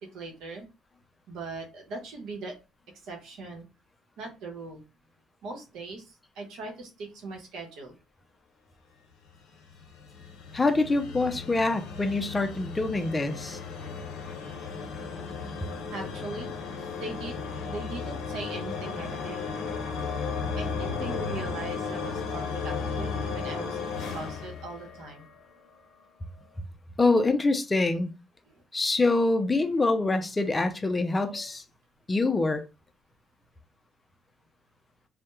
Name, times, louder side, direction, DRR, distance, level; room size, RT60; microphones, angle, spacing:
voice 1, 0.1-0.7 1.3-2.5 3.0-3.6 4.2-4.8 5.4-7.9 15.9-16.5 17.0-17.4 17.7-19.5 20.6-25.2, right 3 dB, 75° right, 0.8 m, -40 dB
sound 1, 9.3-25.4, left 5 dB, 80° left, 0.6 m, -35 dB
voice 2, 10.5-13.6 27.0-28.1 28.7-31.6 32.1-32.6, left 3 dB, 20° left, 0.4 m, -25 dB
2.2 x 2.0 x 3.0 m
cardioid pair, 100°, 0 cm